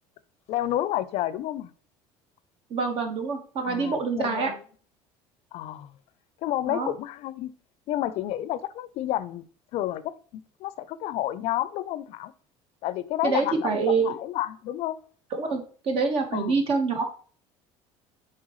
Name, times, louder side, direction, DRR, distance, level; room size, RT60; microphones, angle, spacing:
voice 1, 0.5-1.7 3.6-4.6 5.5-5.9 6.4-7.5 7.9-9.5 9.7-12.3 12.8-13.7 14.0-15.0 16.3-16.6, left 13 dB, 60° left, 0.5 m, -30 dB
voice 2, 2.7-4.5 6.7-6.9 13.2-14.2 15.3-17.0, right 4 dB, 50° right, 1.4 m, -26 dB
7.4 x 4.5 x 3.1 m
cardioid pair, 115°, 12 cm